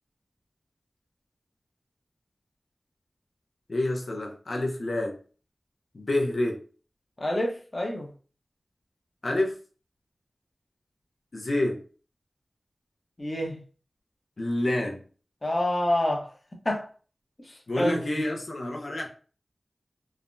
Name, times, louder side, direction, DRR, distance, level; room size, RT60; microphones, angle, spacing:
voice 1, 3.7-5.2 5.9-6.6 9.2-9.6 11.3-11.8 14.4-15.0 17.7-19.1, left 1 dB, 70° left, 0.6 m, -28 dB
voice 2, 7.2-8.1 13.2-13.6 15.4-16.3 16.6-16.9 17.4-18.2, left 1 dB, 40° left, 0.8 m, -28 dB
3.2 x 2.1 x 2.5 m
wide cardioid pair, 50°, 0 cm